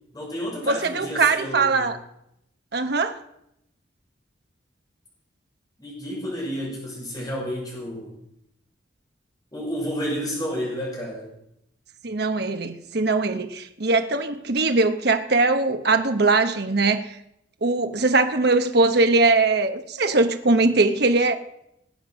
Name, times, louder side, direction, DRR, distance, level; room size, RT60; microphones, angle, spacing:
voice 1, 0.1-1.9 5.8-8.2 9.5-11.3, equal, 20° left, -3 dB, 5.9 m, -31 dB
voice 2, 0.7-2.0 2.7-3.2 12.0-17.2 17.6-21.3, right 3 dB, 60° right, 7 dB, 1.0 m, -21 dB
20.0 x 8.1 x 6.2 m, 0.78 s
head